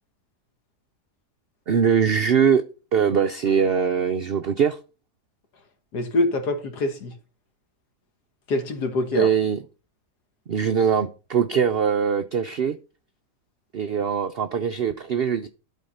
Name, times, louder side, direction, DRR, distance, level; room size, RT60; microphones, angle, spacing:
voice 1, 1.7-2.6 2.9-4.8 9.1-9.6 10.5-12.8 13.7-15.5, right 7 dB, 70° right, 0.5 m, -22 dB
voice 2, 5.9-7.1 8.5-9.3, left 2 dB, 75° left, 2.0 m, -25 dB
12.0 x 4.3 x 5.4 m
omnidirectional pair, 1.7 m